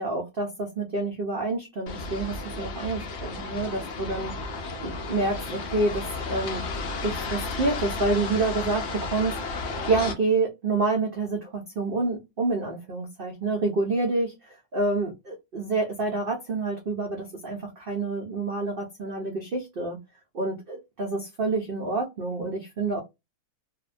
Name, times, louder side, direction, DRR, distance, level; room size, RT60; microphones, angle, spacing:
voice 1, 0.0-4.3 4.8-6.6 7.0-9.4 9.9-20.0 20.3-23.0, right 3 dB, 85° right, 0.4 m, -28 dB
sound 1, 1.9-10.1, left 3 dB, 60° left, 0.7 m, -33 dB
2.6 x 2.1 x 2.4 m
omnidirectional pair, 1.7 m